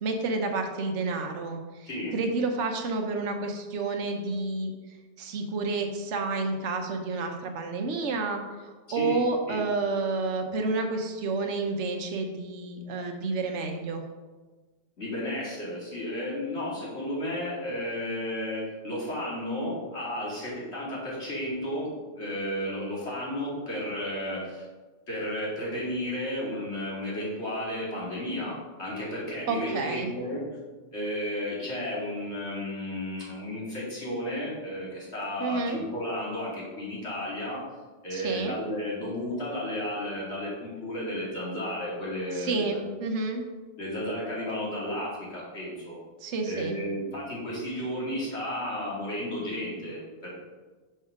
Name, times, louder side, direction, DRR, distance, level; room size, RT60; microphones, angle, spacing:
voice 1, 0.0-4.7 5.2-14.0 29.5-30.1 35.4-35.8 38.1-38.6 42.3-43.4 46.2-46.8, right 3 dB, 80° right, 3 dB, 1.1 m, -30 dB
voice 2, 8.9-9.2 9.5-9.6 15.0-24.7 25.1-30.4 30.9-37.6 38.0-42.8 43.8-46.0 46.4-50.3, left 1 dB, 70° left, -6 dB, 2.6 m, -33 dB
5.6 x 5.4 x 4.9 m, 1.3 s
omnidirectional pair, 1.2 m